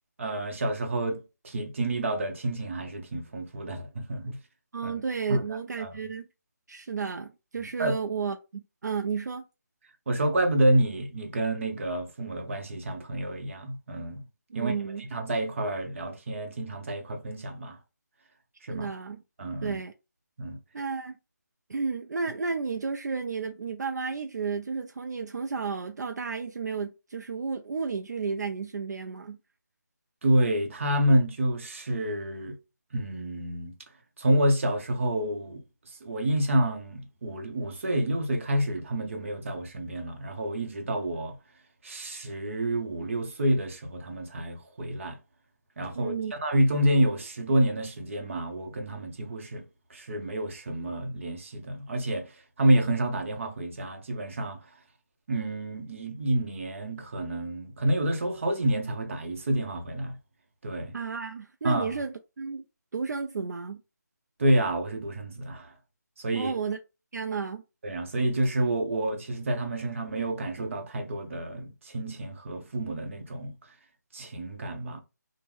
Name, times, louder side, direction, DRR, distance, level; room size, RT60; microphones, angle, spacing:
voice 1, 0.2-4.4 4.8-4.9 5.3-5.4 5.8-6.0 7.6-7.9 10.1-14.2 14.5-17.8 18.6-18.9 19.4-19.8 20.4-20.6 30.2-32.6 32.9-33.7 34.2-41.4 41.8-45.2 45.8-49.6 49.9-54.6 55.3-60.2 60.6-60.9 61.6-62.0 64.4-65.7 66.2-66.5 67.8-73.5 74.1-75.0, right 1 dB, 45° right, 0.8 m, -28 dB
voice 2, 4.7-6.2 6.7-9.4 14.5-15.1 18.7-19.2 19.6-19.9 20.7-21.2 21.7-29.4 45.9-46.3 60.9-62.6 62.9-63.8 66.3-66.8 67.1-67.6, right 5 dB, 70° right, 0.4 m, -32 dB
3.4 x 2.1 x 3.1 m
figure-of-eight pair, 165°, 10 cm